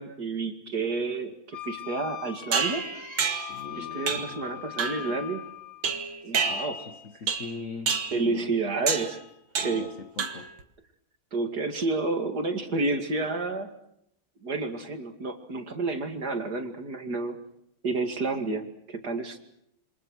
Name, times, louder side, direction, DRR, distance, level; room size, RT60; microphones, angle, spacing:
voice 1, 0.0-2.8 3.8-5.5 6.2-6.9 8.1-9.2 9.6-9.9 11.3-13.7 14.4-17.4 17.8-19.4, right 3 dB, 50° right, 2.8 m, -30 dB
Wind instrument woodwind instrument, 1.5-5.9, left 13 dB, 90° left, 2.4 m, -40 dB
sound 1, 2.5-3.6 4.1-4.4 4.8-5.1 5.8-6.9 7.3-7.6 7.9-8.2 8.9-9.2 9.6-9.9 10.2-10.6, right 5 dB, 65° right, 2.5 m, -29 dB
voice 2, 3.3-4.8 6.3-8.5 9.6-10.5, left 4 dB, 45° left, 1.4 m, -42 dB
28.0 x 25.5 x 6.4 m
omnidirectional pair, 2.3 m